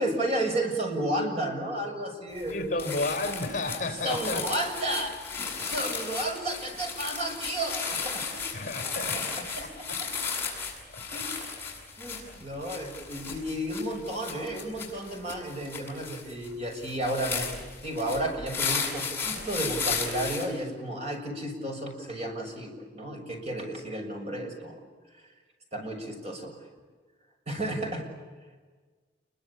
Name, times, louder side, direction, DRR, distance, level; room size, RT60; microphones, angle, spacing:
voice 1, 0.0-2.9 4.0-8.4 8.8-10.1 11.1-11.6 12.0-24.8 25.7-26.6 27.5-28.1, right 1 dB, 35° right, 2 dB, 6.8 m, -33 dB
sound 1, 2.4-2.5 2.8-20.5, left 5 dB, 15° left, 7.4 m, -35 dB
voice 2, 2.5-4.4 8.5-10.0 10.9-11.2 12.2-12.4, left 2 dB, 45° left, 7 dB, 3.6 m, -33 dB
28.5 x 23.5 x 8.7 m, 1.4 s
head